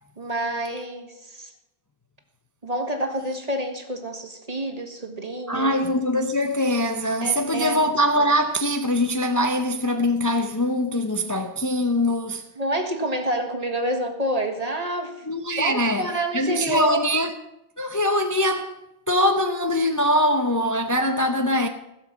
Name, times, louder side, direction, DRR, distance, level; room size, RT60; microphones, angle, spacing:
voice 1, 0.2-1.5 2.6-5.7 7.2-7.8 12.6-15.3 15.6-17.1, right 1 dB, 35° right, 1.8 m, -28 dB
voice 2, 5.5-12.5 15.3-16.1 16.3-17.3 17.8-18.8 19.1-21.7, left 1 dB, 20° left, 0.7 m, -22 dB
16.5 x 7.3 x 7.3 m
omnidirectional pair, 1.1 m